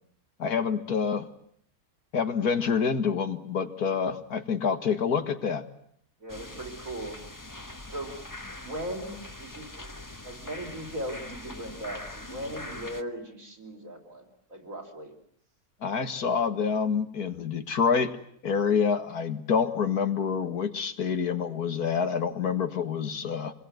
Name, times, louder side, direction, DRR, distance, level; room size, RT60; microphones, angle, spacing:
voice 1, 0.4-1.3 2.1-5.6 15.8-18.1 18.4-23.5, left 6 dB, 90° left, 8 dB, 2.3 m, -27 dB
voice 2, 6.2-7.2 7.9-8.1 8.5-9.9 10.2-15.1, equal, 60° right, 3 dB, 5.2 m, -38 dB
sound 1, 6.3-13.0, left 2 dB, 15° left, 1.3 m, -42 dB
26.5 x 21.5 x 9.4 m, 0.67 s
omnidirectional pair, 1.6 m